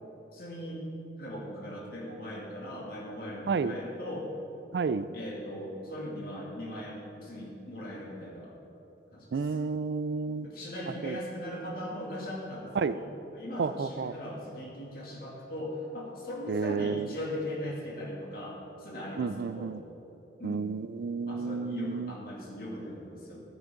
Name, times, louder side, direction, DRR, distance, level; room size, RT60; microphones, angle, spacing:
voice 1, 0.3-0.8 1.2-4.3 5.1-8.6 9.1-9.6 10.4-13.1 13.3-19.8 20.4-20.7 21.2-23.4, left 1 dB, 55° left, -4 dB, 2.6 m, -39 dB
voice 2, 4.7-5.1 9.3-10.5 11.0-11.2 12.8-13.0 13.6-14.1 16.5-17.1 19.2-19.8 20.4-22.1, right 5 dB, 75° right, 14 dB, 0.4 m, -31 dB
13.5 x 9.1 x 3.9 m, 3.0 s
head